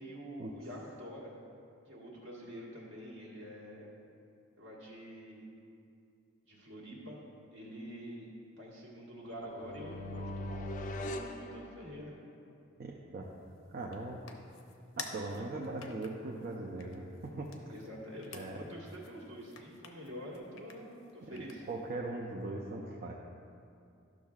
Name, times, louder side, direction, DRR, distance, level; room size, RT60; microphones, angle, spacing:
voice 1, 0.0-1.3 1.9-3.9 4.6-5.5 6.4-7.2 7.5-8.3 8.6-12.2 17.7-21.6, equal, 65° right, -4 dB, 1.6 m, -47 dB
sound 1, 9.3-12.3, left 1 dB, 40° left, 0.4 m, -41 dB
voice 2, 12.8-13.3 13.7-14.2 15.0-17.5 18.3-18.6 21.3-21.4 21.7-23.1, right 2 dB, 50° right, -2 dB, 0.5 m, -40 dB
sound 2, 13.2-21.9, left 6 dB, 80° left, 0.7 m, -52 dB
12.0 x 6.3 x 2.4 m, 2.5 s
head